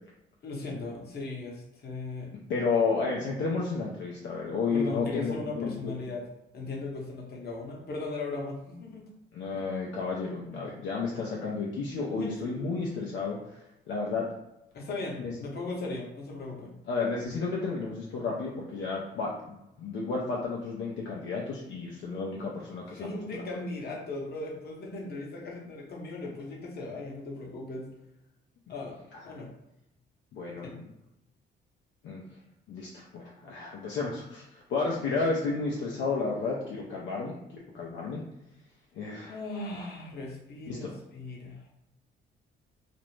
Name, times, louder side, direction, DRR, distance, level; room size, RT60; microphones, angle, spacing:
voice 1, 0.4-2.3 4.7-6.2 6.5-9.0 12.2-12.6 14.7-16.7 23.0-27.9 28.7-29.0 29.2-29.5 30.5-30.7 39.3-41.7, left 2 dB, 55° left, -2 dB, 0.8 m, -37 dB
voice 2, 2.5-6.0 9.3-14.3 15.2-15.3 16.9-23.5 29.1-29.3 30.3-30.9 32.0-32.2 32.7-38.2 38.9-39.4 40.7-40.9, left 4 dB, 75° left, -3 dB, 0.5 m, -32 dB
2.5 x 2.0 x 3.1 m, 0.87 s
cardioid pair, 90°, 20 cm